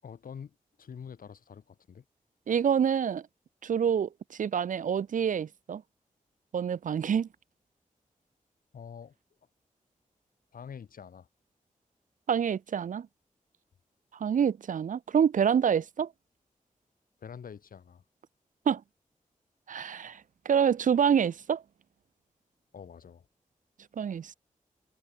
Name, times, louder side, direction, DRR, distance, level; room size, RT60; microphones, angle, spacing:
voice 1, 0.0-2.0 8.7-9.2 10.5-11.3 17.2-18.0 22.7-23.3, left 7 dB, 90° left, 5.4 m, -46 dB
voice 2, 2.5-3.2 3.6-4.1 4.4-5.8 6.5-7.3 12.3-13.1 14.2-16.1 18.7-18.8 19.7-20.2 20.5-21.6 24.0-24.3, right 8 dB, 65° right, 0.5 m, -26 dB
cardioid pair, 70°, 14 cm